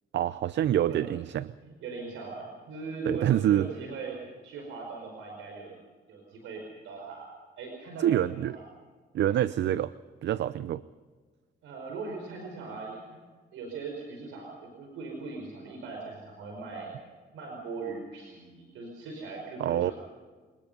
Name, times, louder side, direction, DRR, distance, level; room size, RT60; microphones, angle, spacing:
voice 1, 0.1-1.5 3.1-3.7 8.0-8.6 9.1-9.9 10.2-10.8 19.6-19.9, right 11 dB, 65° right, 16 dB, 0.6 m, -26 dB
voice 2, 1.6-5.7 6.1-7.3 7.6-8.6 11.6-13.0 13.5-16.9 17.3-19.9, right 4 dB, 90° right, 1 dB, 5.0 m, -40 dB
26.0 x 20.0 x 5.4 m, 1.4 s
cardioid pair, 90°, 20 cm